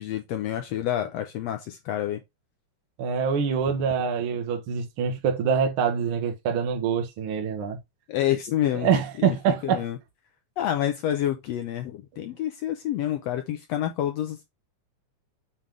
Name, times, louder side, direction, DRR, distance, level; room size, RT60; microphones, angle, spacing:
voice 1, 0.0-2.2 8.1-8.9 9.2-10.0 10.6-14.4, left 11 dB, 75° left, 1.6 m, -28 dB
voice 2, 3.0-7.8 8.8-9.8, right 6 dB, 55° right, 1.6 m, -25 dB
7.6 x 3.5 x 3.6 m
omnidirectional pair, 3.4 m